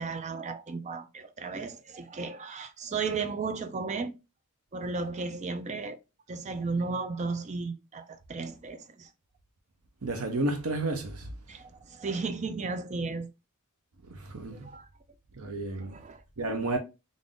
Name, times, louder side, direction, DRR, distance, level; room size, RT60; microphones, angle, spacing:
voice 1, 0.0-4.1 4.7-6.0 6.3-9.1 11.5-13.3 14.6-14.9 15.8-16.2, right 4 dB, 30° right, 0.4 m, -34 dB
voice 2, 10.0-11.3 14.1-14.7 15.4-16.0 16.4-16.8, right 2 dB, 75° right, 0.7 m, -31 dB
3.7 x 2.5 x 3.6 m
head